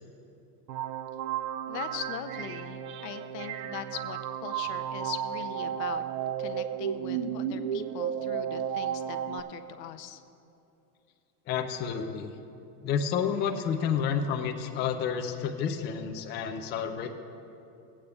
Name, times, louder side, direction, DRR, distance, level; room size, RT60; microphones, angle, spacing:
sound 1, 0.7-9.4, right 9 dB, 65° right, 0.6 m, -33 dB
voice 1, 1.7-6.0 6.4-10.2, left 10 dB, 80° left, 9 dB, 0.8 m, -41 dB
voice 2, 11.5-12.3 12.8-17.1, left 7 dB, 25° left, 5 dB, 0.4 m, -30 dB
16.5 x 8.5 x 3.4 m, 2.7 s
supercardioid pair, 130°, 49 cm